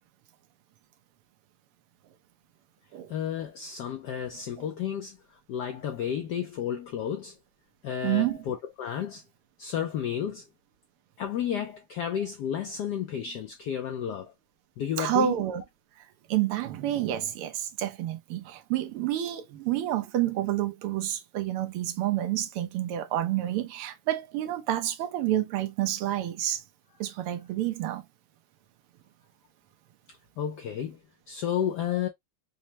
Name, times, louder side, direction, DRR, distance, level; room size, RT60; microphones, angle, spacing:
voice 1, 3.1-7.4 7.8-9.2 9.6-10.4 11.2-14.3 14.8-15.4 30.4-31.0 31.3-32.1, left 9 dB, 85° left, 0.9 m, -32 dB
voice 2, 8.0-8.4 15.0-15.6 16.3-26.6 27.0-28.0, right 12 dB, 90° right, 1.6 m, -29 dB
5.4 x 2.1 x 2.8 m
omnidirectional pair, 2.4 m